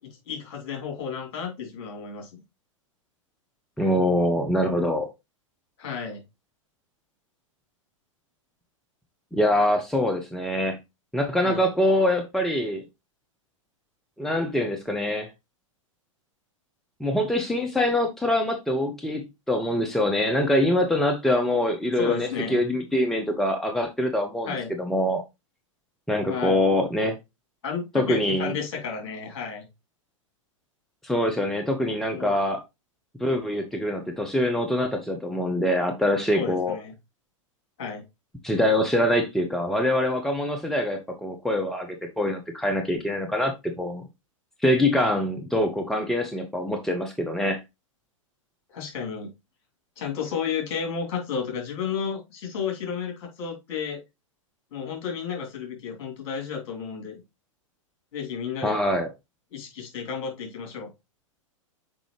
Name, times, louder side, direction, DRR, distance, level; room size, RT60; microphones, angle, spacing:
voice 1, 0.0-2.4 5.8-6.2 11.4-11.6 22.0-22.6 24.5-24.7 26.3-26.6 27.6-29.7 32.1-32.3 36.3-36.9 37.8-38.0 44.9-45.1 48.7-49.3 50.0-54.0 54.7-57.2 58.1-58.8 59.5-60.9, left 6 dB, 50° left, 3.1 m, -32 dB
voice 2, 3.8-5.1 9.3-10.8 11.1-12.8 14.2-15.3 17.0-25.2 26.1-27.2 27.9-28.5 31.0-32.6 33.2-36.8 38.4-44.0 44.6-47.6 58.6-59.1, left 1 dB, ahead, 0.8 m, -24 dB
6.2 x 5.1 x 3.2 m
figure-of-eight pair, 100°, 17 cm